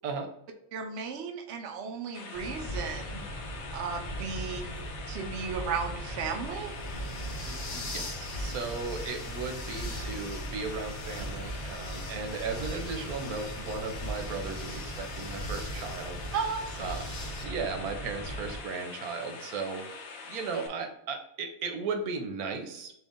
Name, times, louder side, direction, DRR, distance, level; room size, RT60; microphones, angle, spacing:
voice 1, 0.7-3.2 3.7-4.7 5.1-6.8 16.3-16.9, right 5 dB, 55° right, 4 dB, 0.9 m, -35 dB
sound 1, 2.1-20.7, left 4 dB, 55° left, 0.9 m, -44 dB
sound 2, 2.3-18.6, right 1 dB, 30° left, 1.0 m, -39 dB
sound 3, 4.4-17.4, left 3 dB, 80° left, 1.4 m, -46 dB
voice 2, 7.1-16.2 16.8-17.0 17.4-22.9, right 4 dB, 90° right, 5 dB, 1.2 m, -36 dB
4.5 x 3.1 x 3.6 m, 0.76 s
omnidirectional pair, 1.5 m